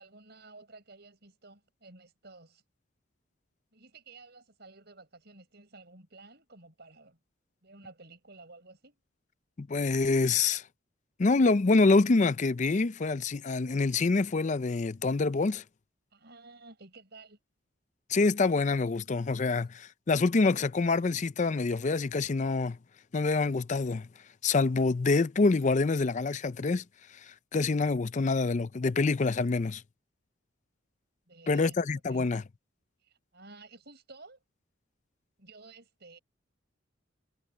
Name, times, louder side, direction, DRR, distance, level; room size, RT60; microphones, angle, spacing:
voice 1, 0.0-2.6 3.7-7.2 7.6-8.9 16.1-17.4 19.5-19.6 31.3-31.8 32.1-32.3 33.0-34.4 35.4-36.2, right 3 dB, 55° right, 6.8 m, -53 dB
voice 2, 9.6-10.6 11.2-15.6 18.1-22.8 23.1-24.1 24.4-26.8 27.2-29.8 31.5-32.4, left 3 dB, 35° left, 0.5 m, -26 dB
head